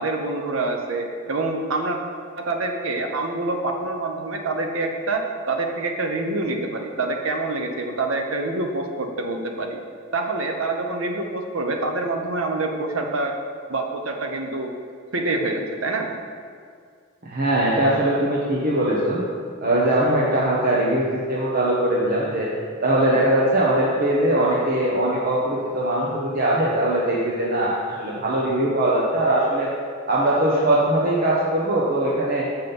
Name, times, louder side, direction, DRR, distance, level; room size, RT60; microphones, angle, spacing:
voice 1, 0.0-2.0 2.4-9.8 10.1-13.3 13.7-14.7 15.1-16.1, right 2 dB, 75° right, 3 dB, 0.9 m, -26 dB
voice 2, 17.2-19.2 19.6-22.5 22.8-29.7 30.1-32.5, right 1 dB, 45° right, -5 dB, 1.0 m, -21 dB
7.4 x 5.8 x 5.4 m, 2.2 s
head